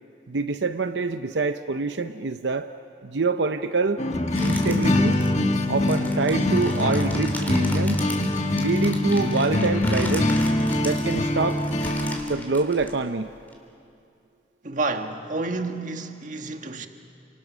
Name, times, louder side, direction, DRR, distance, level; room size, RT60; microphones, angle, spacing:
voice 1, 0.3-2.7 3.0-4.0 4.4-5.2 5.7-8.1 8.6-10.3 10.8-11.6 12.3-13.3, right 4 dB, 85° right, 8 dB, 0.7 m, -26 dB
sound 1, 4.0-12.2, left 1 dB, 40° left, 1.4 m, -23 dB
sound 2, 4.3-13.5, left 1 dB, 10° left, 3.1 m, -38 dB
voice 2, 14.6-16.9, right 3 dB, 45° right, 5 dB, 1.5 m, -29 dB
29.0 x 27.0 x 6.2 m, 2.5 s
head